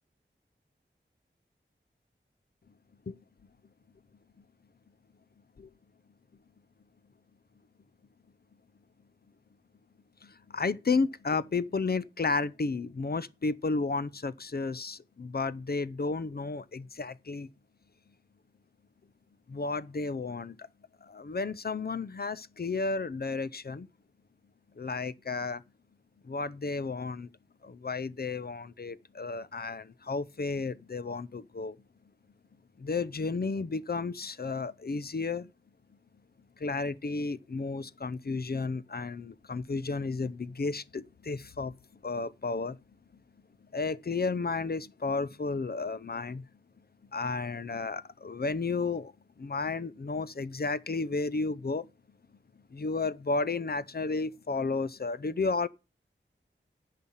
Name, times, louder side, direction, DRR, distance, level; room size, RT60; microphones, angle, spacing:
voice 1, 10.2-17.5 19.5-20.7 21.0-23.9 24.8-25.6 26.2-27.3 27.6-31.8 32.8-35.5 36.6-41.7 42.0-42.8 43.7-46.4 47.1-51.9 52.7-55.7, left 4 dB, 50° left, 0.7 m, -32 dB
10.5 x 5.7 x 7.3 m
wide cardioid pair, 65°, 20 cm